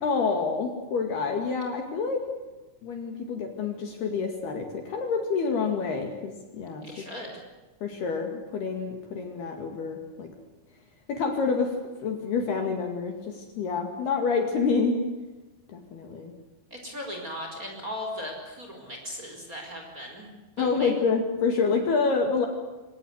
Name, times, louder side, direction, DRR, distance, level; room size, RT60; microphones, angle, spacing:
voice 1, 0.0-2.2 2.8-6.9 7.8-10.3 11.1-11.7 12.0-15.0 15.7-16.3 20.6-22.5, left 4 dB, 55° left, 4 dB, 3.9 m, -27 dB
voice 2, 6.8-7.4 16.7-20.3 20.6-21.0, left 1 dB, 15° right, 1 dB, 4.8 m, -38 dB
25.5 x 18.0 x 8.1 m, 1.2 s
omnidirectional pair, 5.9 m